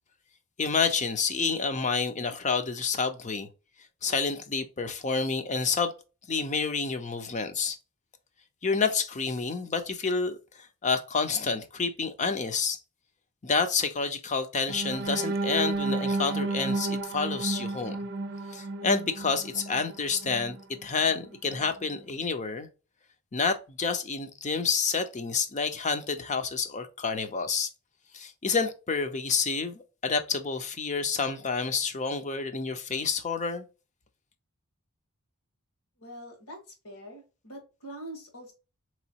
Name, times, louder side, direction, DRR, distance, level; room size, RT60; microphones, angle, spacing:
voice 1, 0.6-3.5 4.0-5.9 6.3-7.8 8.6-12.8 13.4-18.0 18.5-22.7 23.3-27.7 28.1-33.7, left 5 dB, 35° left, 0.6 m, -29 dB
sound 1, 14.7-20.6 21.1-21.3 21.6-21.9, right 2 dB, 50° right, 0.6 m, -32 dB
voice 2, 36.0-38.5, right 1 dB, 75° left, 1.7 m, -44 dB
4.5 x 3.1 x 2.9 m
head